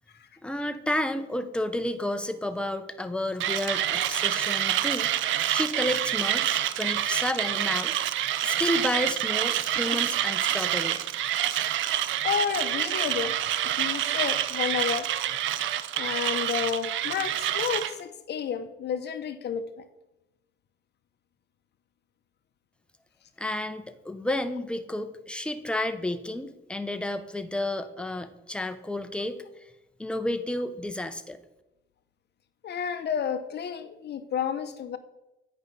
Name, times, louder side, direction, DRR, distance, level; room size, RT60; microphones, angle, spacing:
voice 1, 0.4-7.9 8.4-11.0 23.4-29.4 30.0-31.4, left 1 dB, 5° left, 9 dB, 0.6 m, -31 dB
Mechanisms, 3.4-17.9, right 11 dB, 80° right, 0.5 m, -27 dB
voice 2, 12.2-13.4 13.6-15.1 15.9-19.8 32.6-35.0, left 8 dB, 60° left, 10 dB, 0.6 m, -31 dB
8.9 x 5.4 x 4.0 m, 0.94 s
cardioid pair, 105°, 20 cm